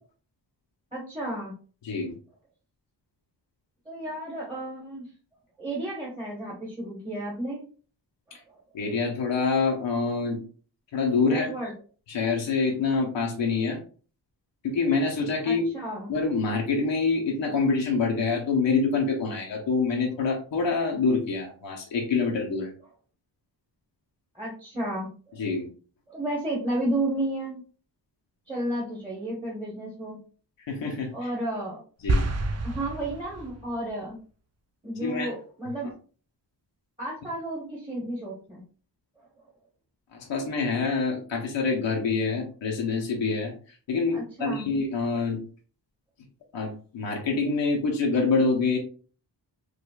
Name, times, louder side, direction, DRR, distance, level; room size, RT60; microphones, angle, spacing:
voice 1, 0.9-1.5 3.8-5.1 5.6-7.7 8.3-8.4 11.3-11.7 15.4-16.1 24.3-25.1 26.1-27.6 28.5-30.2 31.1-31.8 32.6-34.2 34.8-35.9 37.0-38.6 44.1-44.7, right 1 dB, 10° right, -5 dB, 1.1 m, -32 dB
voice 2, 8.7-10.4 10.9-11.7 12.1-13.8 14.6-15.7 16.1-22.7 25.4-25.7 30.7-31.1 32.0-32.2 35.0-35.3 40.1-43.5 43.9-45.4 46.5-48.8, left 4 dB, 85° left, 0 dB, 0.8 m, -26 dB
sound 1, 32.1-33.7, right 2 dB, 40° right, 0.4 m, -28 dB
4.8 x 2.3 x 2.2 m, 0.41 s
wide cardioid pair, 110°, 43 cm